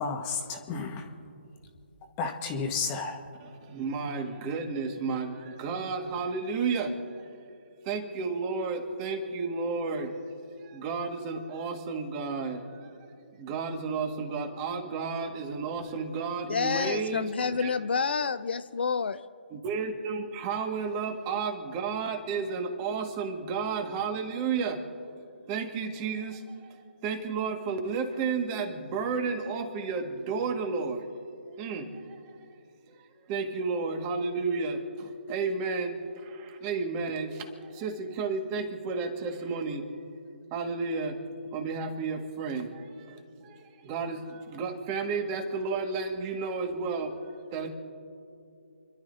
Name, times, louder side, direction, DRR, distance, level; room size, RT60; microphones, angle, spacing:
voice 1, 0.0-1.1 2.2-3.2, left 5 dB, 20° left, 4 dB, 1.4 m, -32 dB
voice 2, 3.6-7.3 7.8-10.1 10.6-12.9 13.4-17.7 19.5-25.2 25.5-31.1 31.5-32.3 32.9-33.0 33.3-39.9 40.5-41.2 41.5-47.1 47.5-47.7, right 4 dB, 20° right, 4 dB, 1.7 m, -32 dB
voice 3, 16.5-19.2, left 5 dB, 60° left, 13 dB, 0.5 m, -28 dB
29.5 x 12.0 x 2.7 m, 2.6 s
figure-of-eight pair, 145°, 6 cm